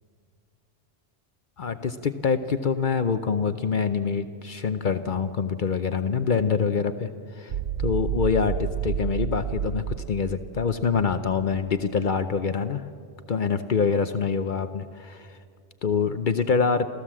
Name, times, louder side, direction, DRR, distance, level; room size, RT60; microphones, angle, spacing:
voice 1, 1.6-7.5 7.8-12.8 13.3-15.4 15.8-16.9, left 5 dB, 55° left, 10 dB, 0.8 m, -25 dB
sound 1, 7.5-11.7, right 10 dB, 85° right, 1.0 m, -30 dB
28.0 x 15.0 x 7.4 m, 2.3 s
omnidirectional pair, 1.0 m